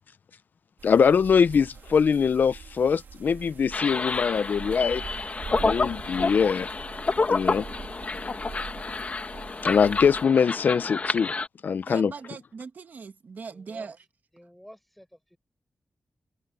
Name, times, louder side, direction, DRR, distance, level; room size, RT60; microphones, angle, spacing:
voice 1, 0.8-5.0 5.6-6.7 7.3-7.7 9.6-11.3 11.6-12.1, left 6 dB, 70° left, 0.5 m, -22 dB
sound 1, 0.8-10.3, right 6 dB, 80° right, 1.9 m, -43 dB
sound 2, 3.7-11.5, left 3 dB, 45° left, 1.6 m, -29 dB
voice 2, 11.9-14.0, right 5 dB, 65° right, 1.6 m, -40 dB
voice 3, 13.5-13.9 14.3-15.4, equal, 5° left, 6.9 m, -50 dB
wide cardioid pair, 100°, 3 cm